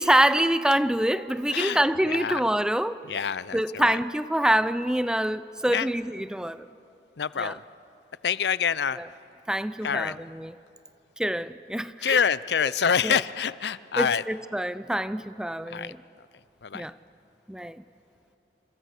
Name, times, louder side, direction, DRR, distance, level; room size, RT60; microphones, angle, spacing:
voice 1, 0.0-3.0 3.5-6.7 7.4-7.6 9.0-9.1 9.5-10.5 11.2-12.2 13.0-13.2 14.0-16.0 16.7-16.9 17.5-17.8, right 1 dB, 5° right, 0.5 m, -26 dB
voice 2, 2.1-2.4 3.1-4.0 5.7-5.9 7.2-7.6 8.2-9.0 9.8-10.2 12.0-14.2 15.7-15.9 16.6-16.9, left 7 dB, 70° left, 0.6 m, -26 dB
29.5 x 27.0 x 6.6 m
head